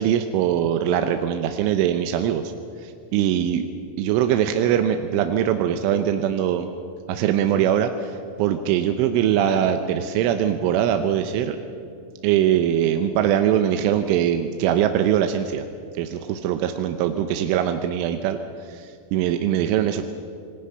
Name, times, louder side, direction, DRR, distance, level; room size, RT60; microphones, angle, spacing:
voice 1, 0.0-2.5 2.8-3.7 4.0-6.7 7.1-11.6 12.2-15.6 16.0-18.4 18.7-20.0, right 10 dB, 80° right, 7 dB, 3.2 m, -22 dB
Bass guitar, 9.3-13.4, left 2 dB, 80° left, 6.8 m, -44 dB
27.0 x 20.5 x 5.7 m, 2.4 s
omnidirectional pair, 5.8 m